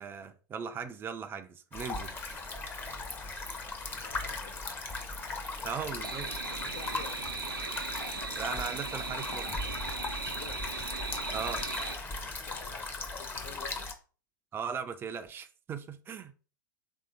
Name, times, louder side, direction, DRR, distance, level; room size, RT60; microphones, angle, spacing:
voice 1, 0.0-2.1 5.6-6.3 8.4-9.6 11.3-11.6 14.5-16.3, right 6 dB, 20° right, 0.4 m, -38 dB
sound 1, 1.7-13.9, left 3 dB, 20° left, 0.7 m, -38 dB
voice 2, 3.9-4.7 5.6-7.4 10.3-10.9 12.0-13.9, left 5 dB, 65° left, 1.3 m, -50 dB
sound 2, 6.0-12.0, right 4 dB, 90° right, 0.6 m, -38 dB
3.4 x 2.8 x 3.8 m
hypercardioid pair, 100°, 11 cm